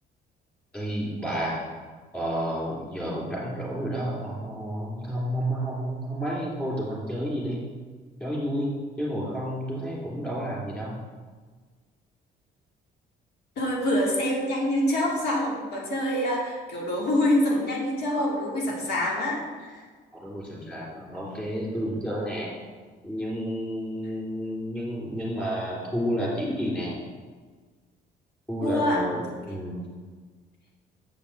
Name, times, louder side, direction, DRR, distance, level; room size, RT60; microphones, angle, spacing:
voice 1, 0.7-1.6 2.1-7.6 8.2-8.7 9.0-11.0 20.2-22.5 23.0-27.0 28.5-29.2 29.5-29.8, equal, 10° left, -6 dB, 3.1 m, -30 dB
voice 2, 13.6-19.8 28.6-29.1 29.5-29.6, left 1 dB, 75° left, -3 dB, 2.3 m, -26 dB
7.8 x 5.2 x 7.2 m, 1.5 s
cardioid pair, 175°, 17 cm